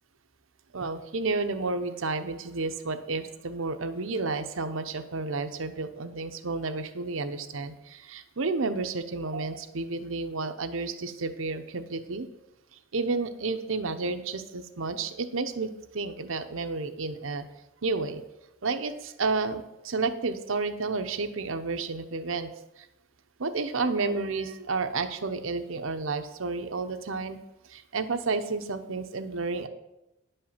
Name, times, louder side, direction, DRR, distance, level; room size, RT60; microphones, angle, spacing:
voice 1, 0.7-12.3 12.9-17.4 17.8-18.2 18.6-22.5 22.8-22.9 23.4-27.4 27.7-29.7, right 3 dB, 70° right, 8 dB, 0.8 m, -31 dB
10.5 x 5.5 x 7.3 m, 0.95 s
head